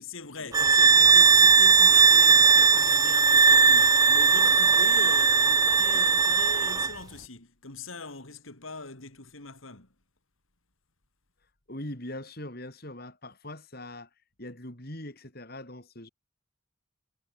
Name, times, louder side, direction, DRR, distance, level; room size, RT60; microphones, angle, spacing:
voice 1, 0.0-9.9, left 4 dB, 85° left, 3.5 m, -42 dB
sound 1, 0.5-6.9, right 5 dB, 20° right, 0.3 m, -19 dB
voice 2, 11.7-14.1 14.4-16.1, left 1 dB, 50° left, 6.0 m, -41 dB
head